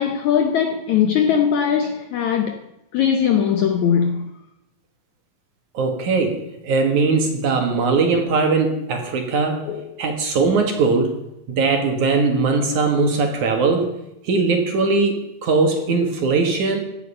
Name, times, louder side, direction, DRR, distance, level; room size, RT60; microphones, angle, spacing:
voice 1, 0.0-2.6 2.9-4.3 9.7-9.8, left 8 dB, 85° left, 1.6 m, -20 dB
voice 2, 5.7-9.7 10.0-11.2 11.5-13.9 14.2-16.8, right 4 dB, 55° right, 2.7 m, -20 dB
16.0 x 11.0 x 5.5 m
omnidirectional pair, 4.6 m